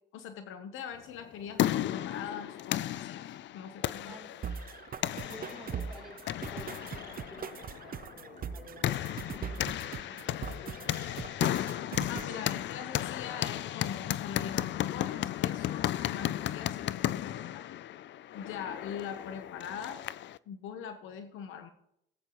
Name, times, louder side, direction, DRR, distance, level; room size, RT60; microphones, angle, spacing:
voice 1, 0.1-4.2 12.1-17.6 18.3-20.0 20.5-21.7, left 7 dB, 85° left, 7 dB, 1.0 m, -42 dB
sound 1, 1.1-20.4, left 12 dB, 65° left, 0.4 m, -34 dB
voice 2, 4.0-4.4 5.2-11.3, right 1 dB, ahead, -2 dB, 5.3 m, -52 dB
sound 2, 4.4-12.4, right 7 dB, 45° right, 0.7 m, -41 dB
19.0 x 8.6 x 3.1 m, 0.76 s
cardioid pair, 90°, 20 cm